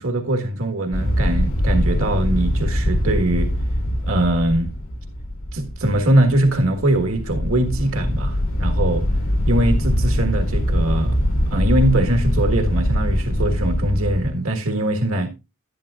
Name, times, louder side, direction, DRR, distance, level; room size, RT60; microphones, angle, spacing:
voice 1, 0.0-3.5 4.0-4.7 5.5-9.1 9.5-11.2 11.5-15.3, right 1 dB, 85° right, 1.6 m, -21 dB
sound 1, 0.9-14.3, equal, 85° left, 2.0 m, -22 dB
11.0 x 10.5 x 2.4 m
head